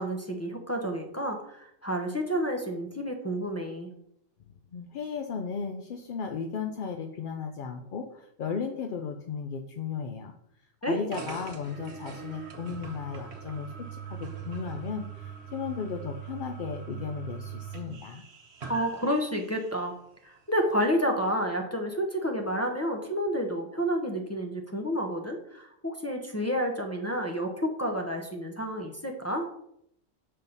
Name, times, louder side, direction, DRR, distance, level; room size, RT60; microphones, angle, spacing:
voice 1, 0.0-3.9 10.8-11.0 18.7-19.9 20.2-29.5, equal, 15° left, 1 dB, 0.7 m, -30 dB
voice 2, 4.7-10.3 10.8-18.2, left 6 dB, 55° left, 4 dB, 0.6 m, -35 dB
sound 1, 11.1-19.8, right 7 dB, 55° right, 1.2 m, -41 dB
7.2 x 5.6 x 4.0 m, 0.74 s
omnidirectional pair, 1.4 m